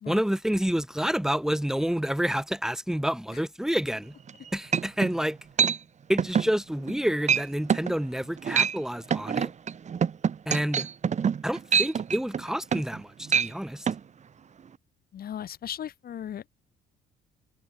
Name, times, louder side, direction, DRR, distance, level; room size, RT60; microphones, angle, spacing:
voice 1, 0.1-4.1 4.5-5.4 6.1-9.5 10.5-10.9 11.4-13.9, equal, 5° right, 3.1 m, -28 dB
sound 1, 4.3-4.4 4.7-5.1 5.6-5.8 6.2-6.5 6.9-7.0 7.3-7.4 7.7-7.9 8.4-8.8 9.1-13.0 13.3-13.5 13.9-14.0, right 7 dB, 40° right, 1.2 m, -25 dB
voice 2, 15.1-16.5, left 10 dB, 55° left, 2.7 m, -37 dB
supercardioid pair, 70°, 18 cm